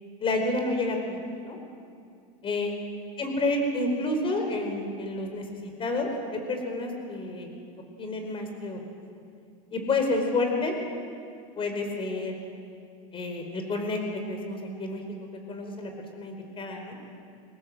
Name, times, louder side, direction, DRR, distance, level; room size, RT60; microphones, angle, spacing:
voice 1, 0.2-1.6 2.4-2.7 3.2-6.1 6.5-7.5 8.0-8.8 9.7-10.7 11.6-12.4 13.1-14.0 14.3-15.0 15.5-17.0, left 2 dB, 30° left, 4 dB, 4.7 m, -29 dB
25.0 x 19.5 x 7.8 m, 2.4 s
supercardioid pair, 125°, 18 cm